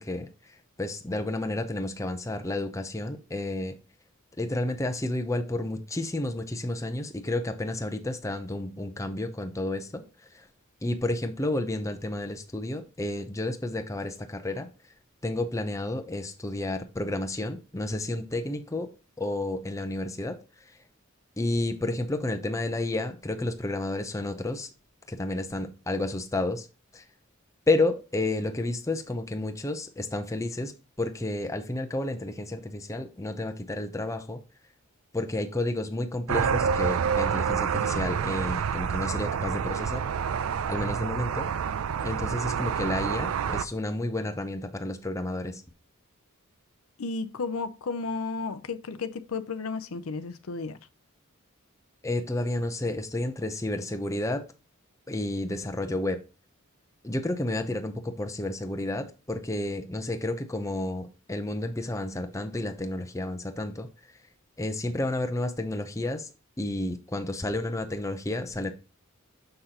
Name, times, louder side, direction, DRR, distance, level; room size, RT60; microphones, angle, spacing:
voice 1, 0.0-3.8 4.4-10.0 10.3-10.5 10.8-14.7 15.2-18.9 19.2-20.4 21.4-24.7 25.1-26.7 26.9-27.0 27.7-30.7 31.0-34.4 35.1-40.0 40.7-41.5 42.0-45.6 52.0-54.4 55.1-56.2 57.0-63.9 64.6-66.3 66.6-68.7, left 2 dB, 15° left, 0.7 m, -31 dB
sound 1, 36.3-43.6, right 7 dB, 80° right, 0.4 m, -28 dB
voice 2, 47.0-50.8, left 4 dB, 85° left, 0.6 m, -33 dB
6.6 x 5.7 x 2.9 m
head